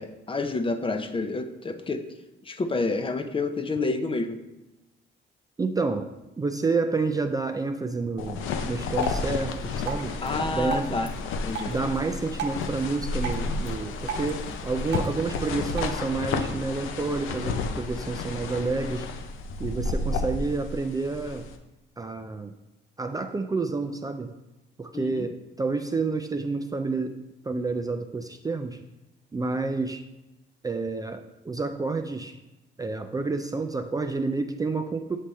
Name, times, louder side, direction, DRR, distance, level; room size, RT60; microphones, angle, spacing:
voice 1, 0.0-2.1 2.4-4.4 10.2-11.1 11.4-11.7 24.9-25.3, left 3 dB, 25° left, 8 dB, 0.6 m, -29 dB
voice 2, 5.6-6.1 6.4-10.2 10.5-11.0 11.7-19.1 19.6-21.5 22.0-22.5 23.0-24.3 24.8-28.8 29.3-30.0 30.6-32.4 32.8-35.2, right 3 dB, 20° right, 6 dB, 0.4 m, -29 dB
sound 1, 8.2-21.6, left 3 dB, 85° left, 0.6 m, -31 dB
Drip, 9.0-16.0, right 6 dB, 60° right, 1.0 m, -39 dB
7.4 x 3.4 x 4.2 m, 0.99 s
cardioid pair, 90°, 20 cm